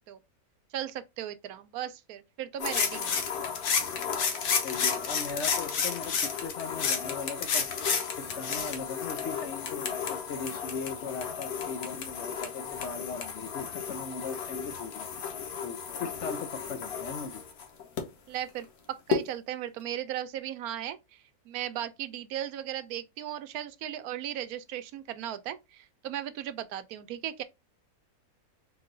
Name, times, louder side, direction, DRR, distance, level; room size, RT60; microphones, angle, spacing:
voice 1, 0.7-3.2 8.2-8.4 18.3-21.2 21.5-27.4, right 11 dB, 80° right, 1.0 m, -36 dB
sound 1, 2.6-18.0 19.1-19.2, left 6 dB, 85° left, 1.4 m, -32 dB
voice 2, 4.6-7.7 8.2-15.1 15.6-17.4, left 5 dB, 65° left, 0.7 m, -39 dB
4.2 x 3.0 x 3.8 m
omnidirectional pair, 1.6 m